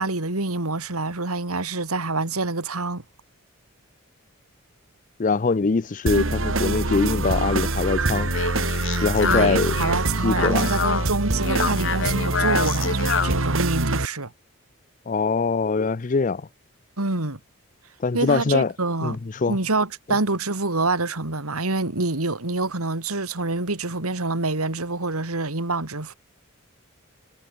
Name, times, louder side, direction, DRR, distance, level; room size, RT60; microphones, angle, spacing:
voice 1, 0.0-3.0 9.2-14.3 17.0-17.4 18.1-19.2 19.5-26.1, right 3 dB, 90° right, 2.7 m, -26 dB
voice 2, 5.2-8.3 9.0-9.8 10.2-10.7 15.1-16.5 18.0-18.7 19.0-19.6, left 4 dB, 35° left, 0.5 m, -23 dB
sound 1, 6.1-14.1, right 2 dB, 60° right, 2.0 m, -25 dB
Speech, 8.0-13.5, left 5 dB, 60° left, 1.2 m, -27 dB
head